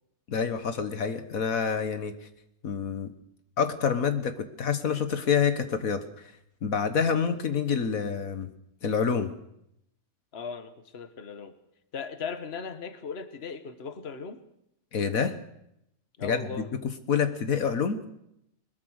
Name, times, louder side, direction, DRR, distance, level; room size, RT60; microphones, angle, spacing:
voice 1, 0.3-2.1 2.6-3.1 3.6-6.3 6.6-8.5 8.8-9.3 14.9-15.4 16.2-18.0, left 6 dB, 75° left, 9 dB, 1.7 m, -27 dB
voice 2, 10.3-11.6 11.9-14.4 16.2-16.7, left 5 dB, 45° left, 10 dB, 1.7 m, -38 dB
21.5 x 21.0 x 6.5 m, 0.78 s
omnidirectional pair, 1.5 m